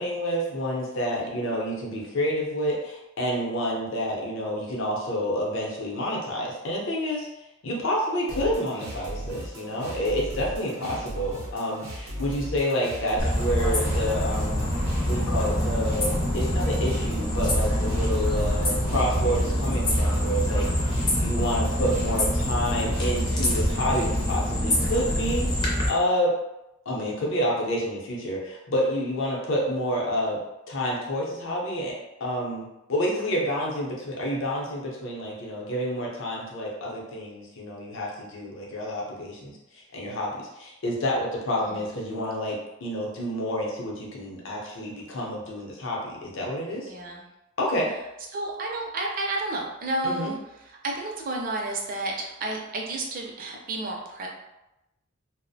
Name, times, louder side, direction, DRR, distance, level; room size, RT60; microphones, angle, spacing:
voice 1, 0.0-7.3 7.6-14.7 15.1-26.3 26.9-30.4 30.7-46.9 47.6-47.9 50.0-50.3, equal, 65° left, -3 dB, 0.6 m, -29 dB
sound 1, 8.3-24.4, right 1 dB, 90° right, 0.6 m, -37 dB
sound 2, 13.2-25.9, equal, 20° left, 0.4 m, -25 dB
voice 2, 46.9-47.2 48.3-50.4 50.8-54.3, right 2 dB, 40° right, 0 dB, 0.4 m, -31 dB
2.4 x 2.0 x 2.6 m, 0.92 s
head